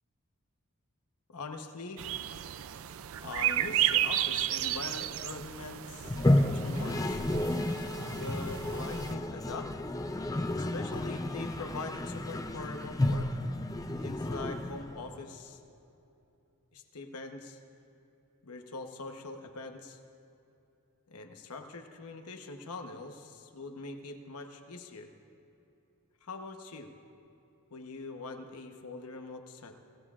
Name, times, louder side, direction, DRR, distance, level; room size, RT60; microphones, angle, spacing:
voice 1, 1.3-2.1 3.2-6.2 6.5-7.2 8.1-9.7 10.5-13.3 14.0-15.6 16.7-17.6 18.4-20.0 21.1-25.1 26.2-26.9 27.7-29.8, left 3 dB, 85° left, 5 dB, 1.0 m, -43 dB
sound 1, 2.0-9.1, right 12 dB, 65° right, 0.4 m, -33 dB
Toilet flush, 6.0-15.1, left 1 dB, 15° left, 0.5 m, -31 dB
24.5 x 16.5 x 2.5 m, 2.8 s
head